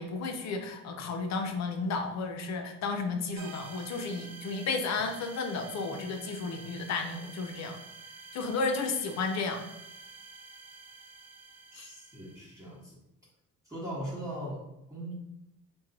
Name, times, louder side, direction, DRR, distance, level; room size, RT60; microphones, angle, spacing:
voice 1, 0.0-7.8 8.3-9.6 11.8-11.9, left 4 dB, 60° left, 5 dB, 0.6 m, -33 dB
sound 1, 3.4-12.7, right 4 dB, 65° right, 0.6 m, -49 dB
voice 2, 11.7-13.0 13.6-15.1, right 1 dB, 10° right, -9 dB, 1.2 m, -40 dB
2.8 x 2.2 x 3.8 m, 0.85 s
cardioid pair, 90°, 30 cm